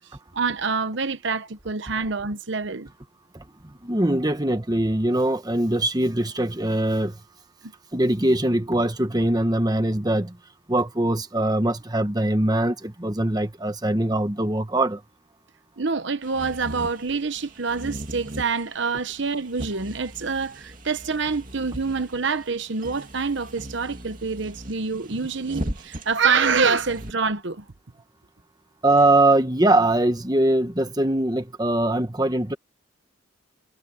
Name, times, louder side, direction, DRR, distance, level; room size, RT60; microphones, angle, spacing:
voice 1, 0.3-2.9 15.8-27.6, right 5 dB, 60° right, 1.0 m, -26 dB
voice 2, 3.8-7.2 7.9-10.4 10.7-15.0 28.8-32.6, right 1 dB, 20° right, 1.1 m, -22 dB
sound 1, 16.2-27.1, right 1 dB, 40° right, 2.9 m, -39 dB
head